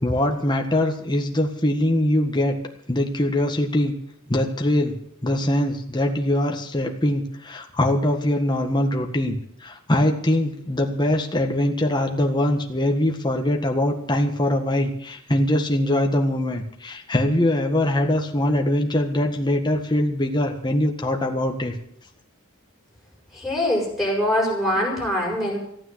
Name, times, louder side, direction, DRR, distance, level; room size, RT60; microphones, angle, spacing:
voice 1, 0.0-2.6 2.9-3.9 4.3-5.0 5.2-21.8 24.8-24.9, left 1 dB, 20° left, 2 dB, 1.6 m, -22 dB
voice 2, 23.3-25.6, left 1 dB, ahead, -3 dB, 6.9 m, -23 dB
15.5 x 9.2 x 8.1 m, 0.68 s
head